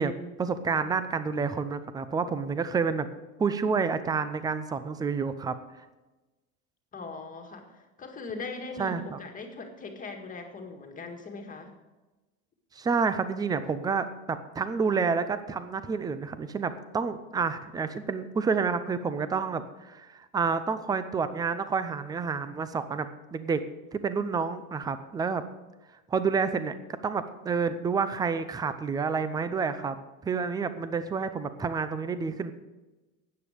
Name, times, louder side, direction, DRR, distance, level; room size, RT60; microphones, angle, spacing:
voice 1, 0.0-3.1 3.4-5.5 8.8-9.2 12.8-23.6 23.9-25.4 26.1-26.8 27.0-29.9 30.2-32.5, right 5 dB, 10° right, 12 dB, 0.5 m, -29 dB
voice 2, 6.9-11.7, left 3 dB, 20° left, 3 dB, 1.8 m, -40 dB
13.5 x 9.3 x 5.0 m, 1.1 s
supercardioid pair, 140°, 39 cm